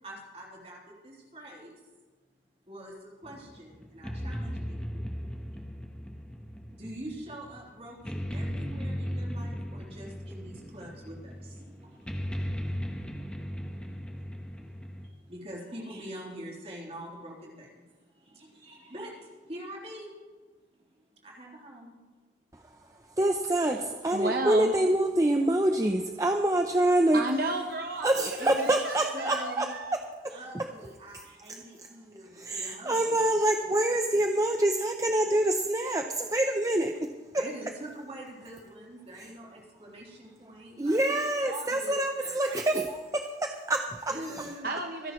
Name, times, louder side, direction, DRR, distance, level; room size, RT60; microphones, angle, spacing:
voice 1, 0.0-1.8 2.7-5.1 6.7-20.1 21.2-22.0 28.4-28.8 29.1-29.8 30.3-33.3 33.5-33.6 34.1-34.5 37.3-42.7 44.1-44.7, right 1 dB, 35° right, -3 dB, 3.6 m, -45 dB
sound 1, 3.2-15.1, equal, 5° left, 1.1 m, -37 dB
voice 2, 23.2-27.2 28.0-29.7 30.5-30.6 32.4-37.1 39.2-39.3 40.8-44.5, right 1 dB, 20° right, 4 dB, 0.6 m, -26 dB
voice 3, 24.1-24.8 27.1-30.0 44.6-45.1, right 2 dB, 55° right, 3 dB, 0.9 m, -33 dB
26.5 x 10.5 x 3.2 m, 1.3 s
head